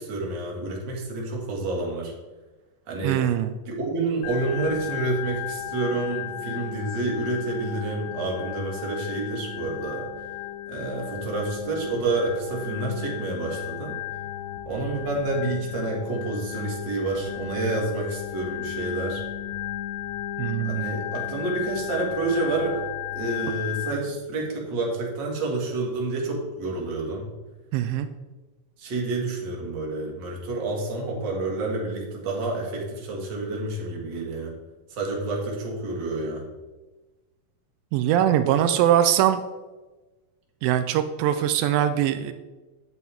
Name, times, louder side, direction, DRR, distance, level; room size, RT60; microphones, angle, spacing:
voice 1, 0.0-2.1 2.9-3.2 3.7-10.1 10.7-13.9 14.7-19.2 20.6-22.8 23.1-27.3 28.8-34.5 34.9-36.5, right 2 dB, 40° right, -2 dB, 2.1 m, -29 dB
voice 2, 3.0-3.5 20.4-20.9 27.7-28.1 37.9-39.4 40.6-42.3, right 11 dB, 85° right, 10 dB, 2.3 m, -22 dB
Organ, 4.2-23.9, left 12 dB, 85° left, 2.3 m, -35 dB
9.1 x 8.4 x 3.5 m, 1.2 s
omnidirectional pair, 4.0 m